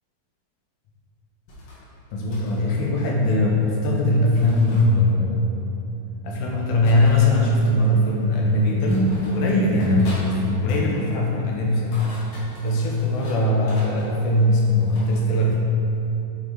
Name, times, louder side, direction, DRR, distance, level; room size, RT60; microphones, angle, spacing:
sound 1, 1.5-1.8 2.3-2.7 4.3-4.9 6.8-7.4 8.2-8.3 8.9-9.4 9.8-10.3 10.6-11.0 11.7-13.4 13.7-15.1, left 1 dB, 90° left, 3.2 m, -40 dB
voice 1, 2.1-5.6 6.2-12.0 12.6-15.6, left 1 dB, 75° left, -2 dB, 2.4 m, -20 dB
6.5 x 5.6 x 4.5 m, 3.0 s
omnidirectional pair, 3.9 m